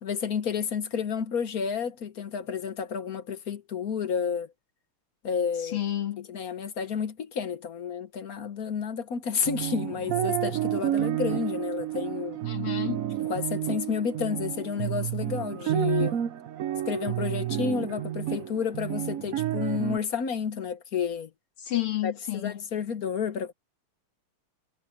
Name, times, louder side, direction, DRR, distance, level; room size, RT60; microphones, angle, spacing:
voice 1, 0.0-4.5 5.2-5.8 6.3-12.4 13.2-16.2 16.9-21.3 22.0-23.5, left 6 dB, 50° left, 1.2 m, -31 dB
voice 2, 5.6-6.3 12.4-13.0 21.6-22.6, left 14 dB, 80° left, 3.1 m, -30 dB
sound 1, 9.4-20.0, right 12 dB, 75° right, 0.7 m, -30 dB
omnidirectional pair, 2.4 m